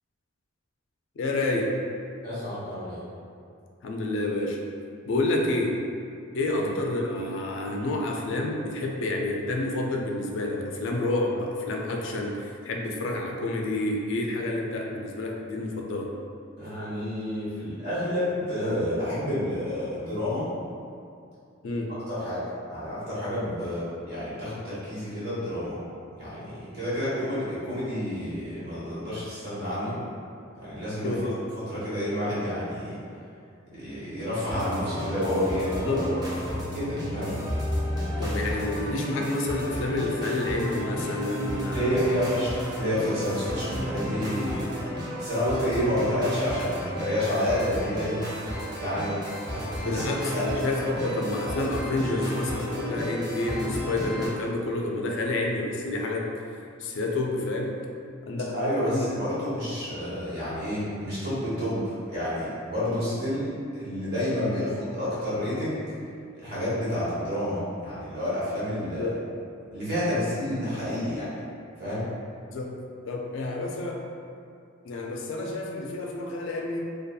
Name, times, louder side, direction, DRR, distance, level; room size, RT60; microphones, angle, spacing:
voice 1, 1.2-1.7 3.8-4.6 5.1-5.8 6.3-16.1 21.6-21.9 31.0-31.4 35.8-36.1 38.2-42.2 49.8-56.3 56.8-57.8 58.3-59.2 64.4-64.6 69.0-69.2 72.5-72.8 73.1-74.0 74.8-76.8, left 2 dB, 65° left, 1 dB, 0.3 m, -29 dB
voice 2, 2.2-3.0 6.5-6.7 16.6-20.4 22.1-22.4 22.7-25.8 26.2-30.0 30.6-31.1 31.7-32.9 33.7-36.1 36.5-37.4 41.7-44.7 45.2-48.2 48.8-49.2 49.5-50.0 50.3-50.5 58.5-65.8 66.4-69.1 69.7-71.3 71.8-72.0, equal, 50° right, -11 dB, 1.1 m, -29 dB
sound 1, 34.5-54.3, equal, 20° right, 0.5 m, -32 dB
2.6 x 2.3 x 2.2 m, 2.4 s
head